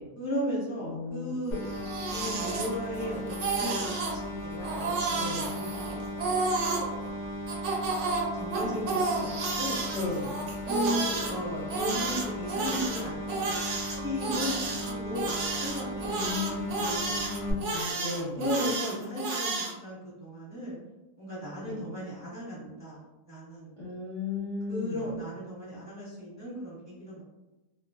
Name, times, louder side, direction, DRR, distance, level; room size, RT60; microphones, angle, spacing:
voice 1, 0.2-5.3 5.5-6.3 8.3-9.8 10.6-16.3 16.8-17.0 18.4-20.8 21.2-23.0 23.3-23.7 24.7-27.2, equal, 15° right, -10 dB, 0.7 m, -36 dB
voice 2, 0.8-1.4 5.1-5.5 9.9-10.4 16.0-18.6 21.6-21.9 23.8-25.2, left 3 dB, 30° left, -10 dB, 0.6 m, -36 dB
sound 1, 1.5-17.5, left 1 dB, 65° left, 0.7 m, -37 dB
Crying sobbing, 1.6-3.0 3.3-4.2 4.6-6.9 7.5-11.3 11.7-19.7, right 3 dB, 65° right, 0.8 m, -31 dB
2.4 x 2.2 x 2.4 m, 1.0 s
omnidirectional pair, 1.5 m